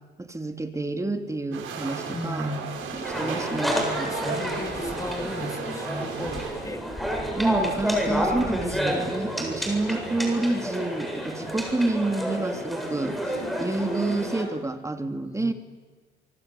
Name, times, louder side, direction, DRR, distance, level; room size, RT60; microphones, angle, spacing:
voice 1, 0.2-2.5 3.0-4.2 7.4-15.5, right 2 dB, 15° right, 6 dB, 2.9 m, -29 dB
sound 1, 1.5-6.5, right 6 dB, 85° right, 6.3 m, -35 dB
voice 2, 2.1-2.7 3.2-6.9 7.2-9.1 15.2-15.5, left 1 dB, 15° left, 5 dB, 3.4 m, -37 dB
sound 2, 2.8-10.3, right 4 dB, 60° right, 6.8 m, -42 dB
sound 3, 3.0-14.4, equal, ahead, 7.7 m, -30 dB
25.5 x 25.0 x 8.5 m, 1.4 s
cardioid pair, 90°, 20 cm